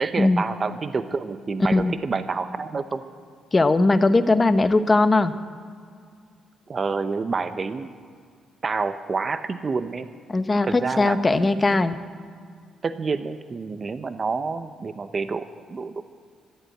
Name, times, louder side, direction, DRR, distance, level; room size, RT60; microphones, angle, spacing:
voice 1, 0.0-3.0 6.7-7.9 8.6-10.1 10.6-11.9 12.8-16.0, right 4 dB, 35° right, 11 dB, 0.7 m, -28 dB
voice 2, 1.6-1.9 3.5-5.3 10.3-12.0, left 2 dB, 25° left, 10 dB, 0.9 m, -19 dB
14.0 x 8.4 x 9.2 m, 2.1 s
cardioid pair, 90°, 0 cm